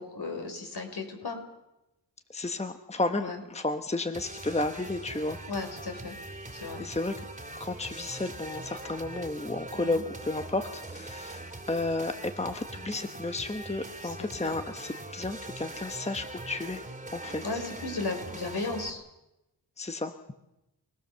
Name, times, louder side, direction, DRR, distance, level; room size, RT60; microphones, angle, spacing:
voice 1, 0.0-1.4 3.2-3.4 5.5-6.2 6.5-6.8 9.7-10.0 14.0-14.5 17.4-19.0, left 3 dB, 65° left, 3 dB, 5.8 m, -35 dB
voice 2, 2.3-5.4 6.8-7.2 7.6-16.8 17.1-17.6 19.8-20.2, left 2 dB, 15° left, 7 dB, 1.2 m, -32 dB
sound 1, 4.1-18.9, right 2 dB, 15° right, 3.0 m, -42 dB
30.0 x 20.0 x 7.0 m, 0.90 s
wide cardioid pair, 110°, 42 cm